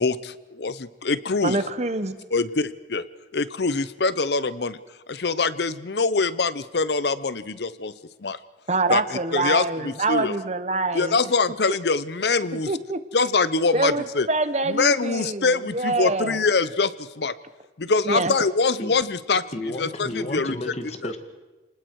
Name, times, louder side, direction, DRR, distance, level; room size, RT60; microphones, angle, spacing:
voice 1, 0.0-1.6 2.3-3.0 3.3-4.8 5.1-7.9 8.2-8.4 8.9-10.3 10.9-12.7 13.1-14.3 14.7-17.3 17.8-19.4 19.8-20.6 21.0-21.1, left 4 dB, 60° left, 0.7 m, -24 dB
voice 2, 1.4-2.2 8.7-11.2 12.7-13.0 13.7-16.4 18.0-18.3, right 3 dB, 35° right, 1.1 m, -25 dB
voice 3, 19.5-21.2, left 1 dB, 35° left, 1.7 m, -32 dB
29.5 x 20.0 x 4.7 m
head